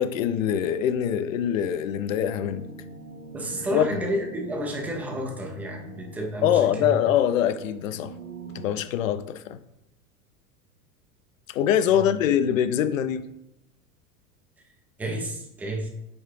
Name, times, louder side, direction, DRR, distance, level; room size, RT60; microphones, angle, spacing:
voice 1, 0.0-2.7 3.7-4.0 6.4-8.1 8.5-9.6 11.5-13.3, left 9 dB, 55° left, 0.6 m, -24 dB
sound 1, 2.4-8.7, right 4 dB, 85° right, 0.7 m, -43 dB
voice 2, 3.3-6.9 11.9-12.0 15.0-15.9, equal, 5° right, 0.3 m, -31 dB
8.5 x 3.6 x 3.3 m
figure-of-eight pair, 85°, 47 cm